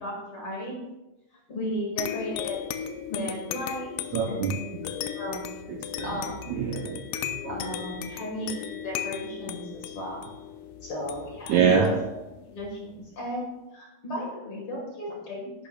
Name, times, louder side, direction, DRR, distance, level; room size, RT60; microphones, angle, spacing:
voice 1, 0.0-0.8 1.5-4.0 4.2-4.5 5.1-5.5 6.0-6.4 7.5-10.2 10.8-12.0 12.5-15.5, left 1 dB, 50° left, -2 dB, 2.0 m, -35 dB
sound 1, 2.0-13.1, left 10 dB, 85° left, 2.2 m, -37 dB
voice 2, 4.1-4.5 5.7-6.2 6.5-7.5 11.5-11.9, right 6 dB, 75° right, 2 dB, 1.8 m, -25 dB
10.0 x 9.0 x 2.3 m, 1.0 s
omnidirectional pair, 4.0 m